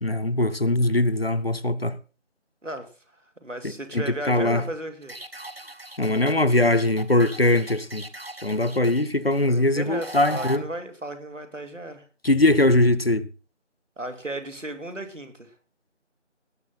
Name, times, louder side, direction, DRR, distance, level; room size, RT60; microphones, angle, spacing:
voice 1, 0.0-2.0 3.6-4.6 6.0-8.1 8.4-10.7 12.2-13.2, left 2 dB, 55° left, 0.8 m, -21 dB
voice 2, 3.4-5.1 9.4-12.0 14.0-15.5, right 1 dB, 85° right, 2.6 m, -35 dB
sound 1, 5.0-10.6, right 1 dB, 55° right, 1.1 m, -39 dB
18.0 x 7.4 x 3.9 m
figure-of-eight pair, 180°, 36 cm